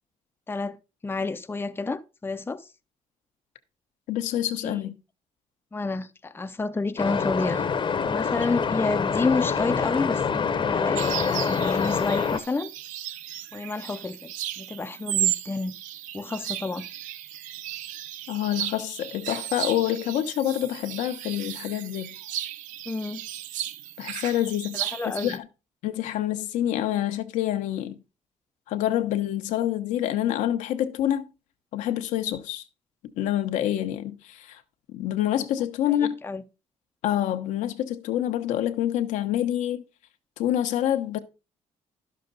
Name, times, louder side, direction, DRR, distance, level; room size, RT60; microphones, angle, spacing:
voice 1, 1.0-2.7 4.6-4.8 5.7-7.6 8.1-12.7 13.5-15.7 16.1-16.8 22.9-23.2 24.7-25.4 35.9-36.4, left 3 dB, 15° left, 0.6 m, -30 dB
voice 2, 4.1-5.0 18.3-22.1 24.0-24.9 25.2-25.4 25.8-28.0 28.7-31.3 31.7-32.6 33.2-34.6 34.9-36.2 37.0-39.8 40.4-41.2, left 12 dB, 85° left, 0.9 m, -27 dB
sound 1, 7.0-12.4, left 6 dB, 40° left, 0.9 m, -26 dB
sound 2, 10.9-25.4, right 12 dB, 90° right, 0.5 m, -34 dB
11.0 x 6.6 x 3.9 m
cardioid pair, 85°, 13 cm